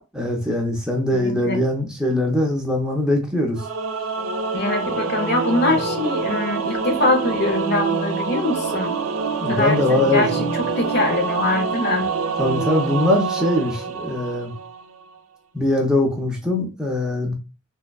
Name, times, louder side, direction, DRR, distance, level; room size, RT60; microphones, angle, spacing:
voice 1, 0.1-3.7 5.7-5.8 9.4-10.5 12.4-14.5 15.5-17.3, left 1 dB, 5° right, 0.5 m, -22 dB
voice 2, 1.1-1.6 4.5-8.9 9.5-12.1, left 2 dB, 50° left, 0.5 m, -23 dB
Singing / Musical instrument, 3.6-14.8, right 5 dB, 80° right, 0.5 m, -26 dB
3.3 x 2.1 x 2.3 m
head